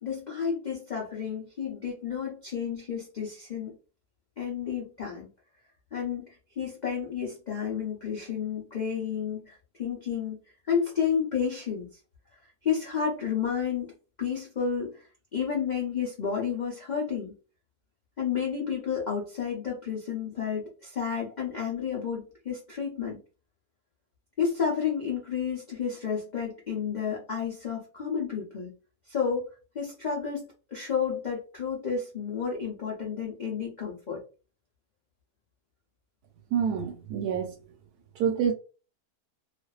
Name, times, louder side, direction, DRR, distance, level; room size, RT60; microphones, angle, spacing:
voice 1, 0.0-3.8 4.4-5.3 5.9-6.3 6.6-10.4 10.7-12.0 12.6-13.9 14.2-15.1 15.3-17.4 18.2-23.2 24.4-28.7 29.1-29.5 29.7-34.2, left 7 dB, 75° left, 0.4 m, -31 dB
voice 2, 36.5-37.5 38.2-38.5, right 7 dB, 90° right, 1.2 m, -27 dB
2.5 x 2.3 x 2.3 m
omnidirectional pair, 1.6 m